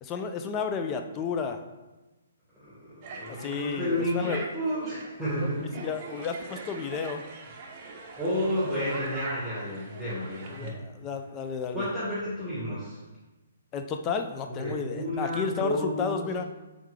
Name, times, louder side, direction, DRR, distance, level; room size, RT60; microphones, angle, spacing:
voice 1, 0.0-1.6 3.4-4.4 5.4-5.5 5.8-7.2 10.5-11.9 13.7-16.4, left 6 dB, 25° left, 6 dB, 0.3 m, -32 dB
voice 2, 2.5-5.8 7.8-10.7 11.7-13.0 14.5-16.3, equal, 5° left, -13 dB, 1.4 m, -31 dB
sound 1, 3.0-10.7, right 4 dB, 40° right, 0.6 m, -43 dB
3.6 x 3.6 x 3.1 m, 1.1 s
hypercardioid pair, 145°, 0 cm